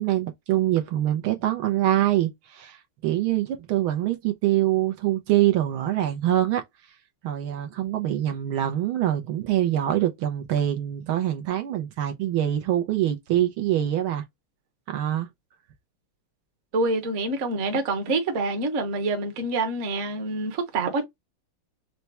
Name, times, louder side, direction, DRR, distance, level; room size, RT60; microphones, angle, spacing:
voice 1, 0.0-2.8 3.0-6.6 7.2-14.2 14.9-15.3, right 12 dB, 75° right, 1.5 m, -24 dB
voice 2, 16.7-21.0, right 2 dB, 45° right, 1.1 m, -26 dB
4.5 x 2.2 x 4.0 m
omnidirectional pair, 2.4 m